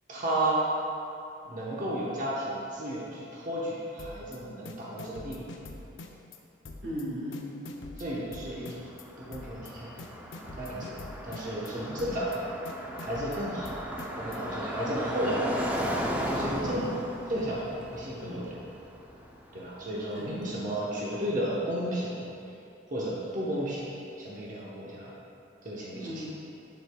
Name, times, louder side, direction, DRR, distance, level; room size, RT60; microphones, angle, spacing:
voice 1, 0.1-0.7 1.4-5.4 8.0-8.8 9.2-9.9 10.6-11.0 11.2-12.4 13.0-13.8 14.2-15.7 16.3-16.9 17.3-18.6 19.5-22.2 22.9-23.9 24.2-25.1 25.6-26.3, right 1 dB, 45° right, -6 dB, 1.0 m, -33 dB
sound 1, 4.0-4.4 4.6-6.4 6.6-7.0 7.3-9.0 9.3-9.7 10.0-11.7 12.0-12.4 12.6-14.4, left 2 dB, 75° left, 0.6 m, -44 dB
voice 2, 6.8-7.5 11.7-12.0 20.1-20.6 25.9-26.3, equal, 90° right, -5 dB, 1.6 m, -37 dB
Car passing by, 8.5-20.5, equal, 10° right, 0.5 m, -36 dB
8.2 x 7.7 x 2.3 m, 2.7 s
head